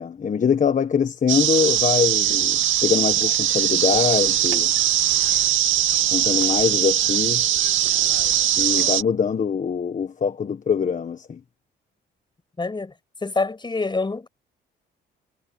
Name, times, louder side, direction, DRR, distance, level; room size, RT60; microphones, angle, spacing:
voice 1, 0.0-4.7 6.1-7.6 8.6-11.4, left 6 dB, 40° left, 1.4 m, -23 dB
sound 1, 1.3-9.0, right 11 dB, 80° right, 2.4 m, -21 dB
voice 2, 12.6-12.9 13.2-14.3, left 3 dB, 25° left, 5.9 m, -26 dB
cardioid pair, 90°, 20 cm